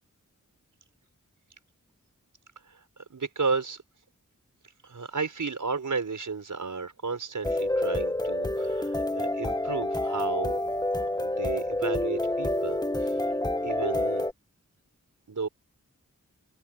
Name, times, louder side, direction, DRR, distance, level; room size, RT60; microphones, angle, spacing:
voice 1, 3.1-3.8 4.8-10.6 10.9-13.1 13.6-14.3 15.3-15.5, right 4 dB, 75° right, 5.8 m, -33 dB
sound 1, 7.4-14.3, left 1 dB, 15° left, 1.5 m, -28 dB
open air
wide cardioid pair, 80°, 31 cm